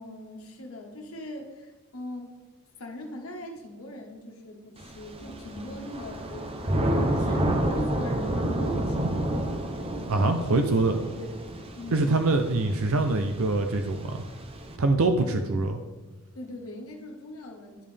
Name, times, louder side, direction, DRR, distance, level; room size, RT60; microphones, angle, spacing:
voice 1, 0.0-2.3 2.8-9.4 10.2-11.4 11.8-12.2 15.2-15.6 16.3-17.9, left 1 dB, 70° left, 1 dB, 1.4 m, -40 dB
Thunder / Rain, 4.8-14.7, right 1 dB, 25° right, 0.6 m, -30 dB
voice 2, 10.1-10.9 11.9-14.2 14.8-15.8, right 2 dB, 70° right, 6 dB, 0.6 m, -24 dB
11.0 x 5.4 x 3.4 m, 1.3 s
head